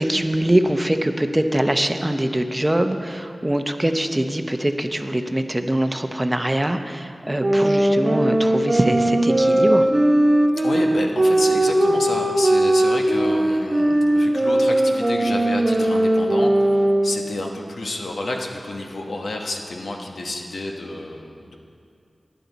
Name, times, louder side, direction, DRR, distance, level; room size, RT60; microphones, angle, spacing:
voice 1, 0.0-9.9, right 1 dB, 20° right, 7 dB, 0.7 m, -23 dB
sound 1, 7.4-17.4, right 1 dB, 40° right, 1.1 m, -19 dB
voice 2, 10.6-21.6, left 2 dB, 85° left, 2 dB, 1.1 m, -30 dB
14.0 x 10.0 x 4.0 m, 2.4 s
wide cardioid pair, 55°, 0 cm